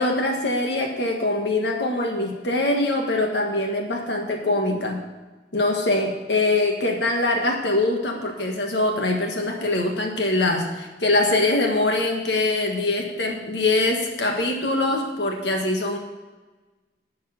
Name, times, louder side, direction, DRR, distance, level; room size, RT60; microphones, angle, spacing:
voice 1, 0.0-5.0 5.5-16.0, left 2 dB, 75° left, 2 dB, 1.4 m, -23 dB
11.0 x 4.8 x 8.0 m, 1.2 s
head